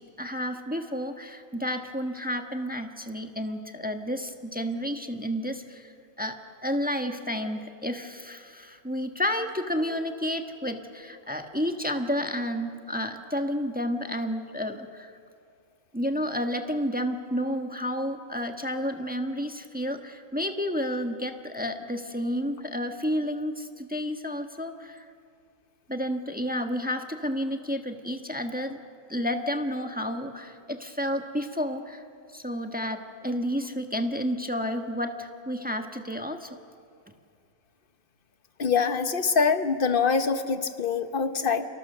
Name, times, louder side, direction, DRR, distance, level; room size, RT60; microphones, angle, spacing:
voice 1, 0.2-5.9 6.2-6.4 6.6-15.1 15.9-25.0 25.9-28.8 29.1-32.0 32.3-36.6, equal, 5° right, 5 dB, 1.2 m, -31 dB
voice 2, 38.6-41.7, left 5 dB, 40° left, 9 dB, 1.3 m, -24 dB
29.5 x 27.0 x 6.8 m, 2.3 s
omnidirectional pair, 1.5 m